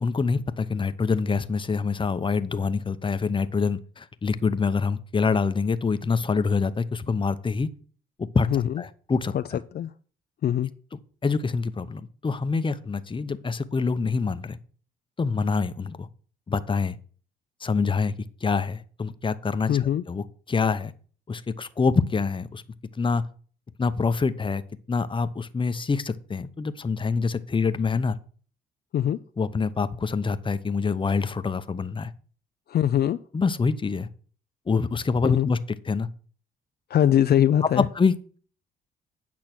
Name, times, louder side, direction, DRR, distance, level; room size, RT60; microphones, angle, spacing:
voice 1, 0.0-7.7 8.3-9.6 11.2-14.6 15.2-16.1 16.5-17.0 17.6-18.1 18.4-20.9 21.3-22.6 23.0-23.2 23.8-24.6 24.9-28.2 29.4-32.1 33.3-34.1 34.7-35.6 35.9-36.1 37.7-38.4, left 4 dB, 25° left, 12 dB, 0.8 m, -26 dB
voice 2, 19.7-20.0 28.9-29.2 32.7-33.2 35.2-35.5 36.9-37.8, left 10 dB, 55° left, 11 dB, 0.5 m, -22 dB
8.9 x 6.1 x 6.0 m, 0.43 s
cardioid pair, 90°, 20 cm